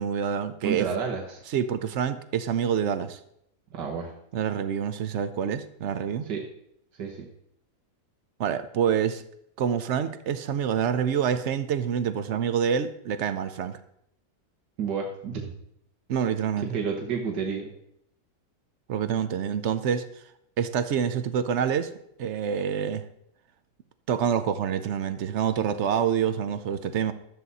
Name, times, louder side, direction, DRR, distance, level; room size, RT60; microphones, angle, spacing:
voice 1, 0.0-0.9 1.5-3.2 4.3-6.3 8.4-9.2 9.6-13.8 16.1-16.8 18.9-20.1 20.6-21.9 22.2-23.0 24.1-27.1, right 8 dB, 60° right, 12 dB, 0.7 m, -27 dB
voice 2, 0.6-1.4 3.7-4.1 6.3-6.4 7.0-7.3 14.8-15.5 16.6-17.7, right 6 dB, 85° right, 0 dB, 1.8 m, -30 dB
12.5 x 7.8 x 4.1 m, 0.74 s
omnidirectional pair, 1.8 m